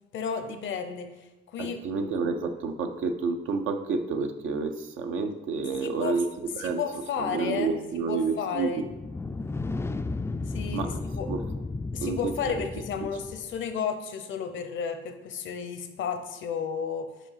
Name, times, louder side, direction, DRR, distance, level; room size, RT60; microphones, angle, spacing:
voice 1, 0.1-1.8 5.8-6.2 6.6-7.8 8.1-8.8 10.5-11.3 11.9-17.1, left 6 dB, 75° left, 8 dB, 0.8 m, -33 dB
voice 2, 1.6-6.8 7.2-8.8 10.7-11.5 12.0-12.6, right 4 dB, 80° right, 6 dB, 0.7 m, -30 dB
sound 1, 8.8-13.6, left 3 dB, 15° left, 0.3 m, -34 dB
5.1 x 4.7 x 5.7 m, 1.0 s
cardioid pair, 90°, 20 cm